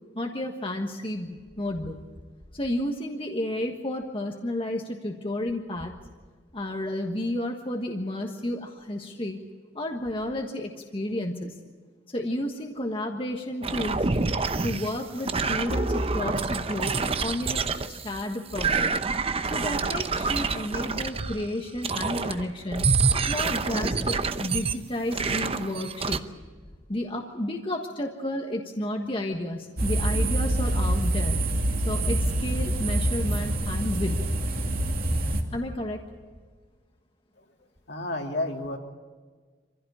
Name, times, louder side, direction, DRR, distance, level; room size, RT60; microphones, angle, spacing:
voice 1, 0.1-2.0 2.5-5.9 6.5-9.4 9.7-11.6 12.1-14.1 14.6-18.9 19.5-22.9 23.3-26.2 26.9-31.4 31.8-34.2 35.5-36.0, left 1 dB, 30° left, 2 dB, 1.5 m, -31 dB
sound 1, 13.6-18.2 18.5-21.5 21.8-22.5 22.7-24.7 25.1-26.2, right 4 dB, 30° right, 0.8 m, -27 dB
sound 2, 29.8-35.4, right 1 dB, 50° right, 2.6 m, -26 dB
voice 2, 37.9-38.8, left 2 dB, 60° left, 2 dB, 2.7 m, -30 dB
25.5 x 16.0 x 8.7 m, 1.5 s
head